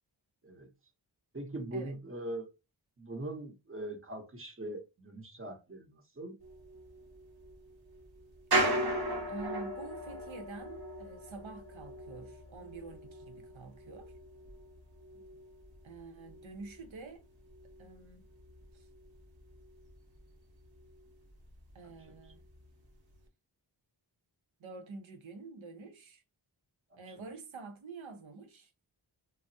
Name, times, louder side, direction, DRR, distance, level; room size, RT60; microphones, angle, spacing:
voice 1, 1.3-2.5 3.0-6.4, right 1 dB, 30° right, 0.8 m, -41 dB
sound 1, 6.4-18.0 18.3-19.9 20.2-20.3 20.6-21.1 21.4-22.6 23.1-23.2, right 1 dB, 55° right, 0.9 m, -38 dB
voice 2, 9.3-14.1 15.8-17.2 17.8-18.2 18.7-18.9 21.7-22.4 24.6-26.2 27.0-28.7, right 3 dB, 90° right, 0.7 m, -47 dB
3.3 x 2.0 x 2.6 m
wide cardioid pair, 70°, 45 cm